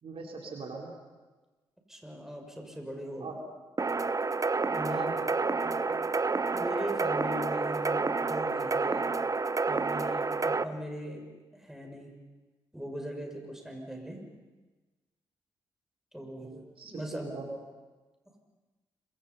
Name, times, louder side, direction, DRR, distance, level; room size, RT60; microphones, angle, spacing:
voice 1, 0.0-0.9 3.2-3.3 4.9-6.0 16.4-17.5, right 4 dB, 55° right, 0 dB, 4.3 m, -41 dB
voice 2, 1.9-3.3 4.7-5.2 6.5-9.2 9.7-12.1 12.7-14.2 16.1-16.5 16.8-17.4, equal, 5° right, 2 dB, 6.6 m, -40 dB
sound 1, 3.8-10.6, right 4 dB, 30° right, 0.9 m, -29 dB
26.5 x 24.5 x 5.7 m, 1.2 s
hypercardioid pair, 40°, 11 cm